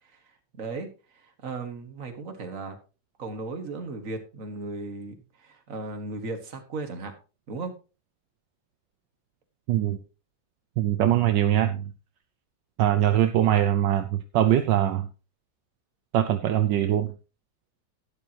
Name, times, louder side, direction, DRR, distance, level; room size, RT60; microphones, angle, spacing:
voice 1, 0.5-0.9 1.1-2.8 3.2-7.1 7.5-7.7, right 3 dB, 45° right, 6 dB, 1.9 m, -36 dB
voice 2, 10.8-11.9 12.8-15.1 16.1-17.1, right 11 dB, 75° right, 9 dB, 1.3 m, -22 dB
12.0 x 10.5 x 2.9 m, 0.32 s
omnidirectional pair, 2.0 m